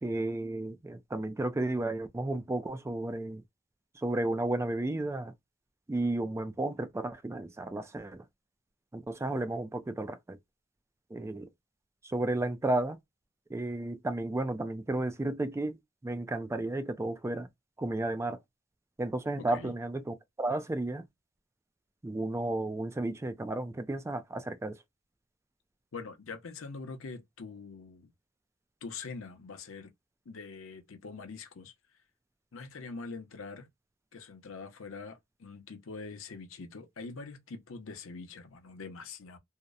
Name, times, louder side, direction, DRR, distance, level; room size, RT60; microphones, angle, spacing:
voice 1, 0.0-3.4 4.0-5.3 5.9-8.2 8.9-10.4 11.1-11.5 12.0-13.0 13.5-15.8 16.0-17.5 17.8-18.4 19.0-21.0 22.0-24.8, right 2 dB, 15° right, 0.3 m, -33 dB
voice 2, 25.9-28.1 28.8-29.9 30.3-31.7 32.5-33.7 34.1-39.4, left 4 dB, 90° left, 0.7 m, -44 dB
2.7 x 2.0 x 2.3 m
head